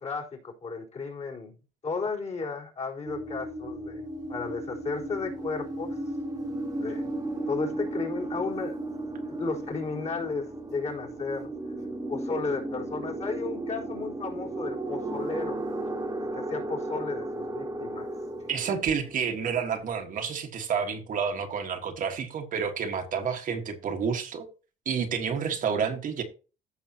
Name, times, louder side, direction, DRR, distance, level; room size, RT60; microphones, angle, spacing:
voice 1, 0.0-1.5 1.8-4.0 4.3-6.0 6.8-7.1 7.5-8.7 9.3-11.5 12.1-15.6 16.3-18.1, left 4 dB, 40° left, 4.4 m, -34 dB
sound 1, 3.0-19.9, right 2 dB, 20° right, 1.7 m, -35 dB
voice 2, 18.5-24.5 24.8-26.2, right 6 dB, 50° right, 1.6 m, -29 dB
15.0 x 6.4 x 2.9 m
cardioid pair, 110°, 17 cm